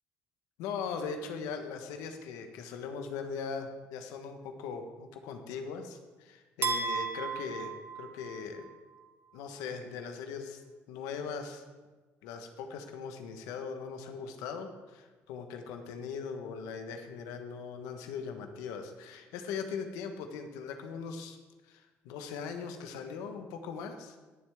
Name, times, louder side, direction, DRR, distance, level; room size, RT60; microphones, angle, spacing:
voice 1, 0.6-8.7 9.3-10.6 10.9-11.6 12.2-21.4 21.6-24.2, left 5 dB, 90° left, 6 dB, 1.3 m, -40 dB
sound 1, 6.6-8.7, right 5 dB, 45° right, 1.3 m, -35 dB
20.0 x 7.6 x 3.6 m, 1.3 s
supercardioid pair, 90°, 6 cm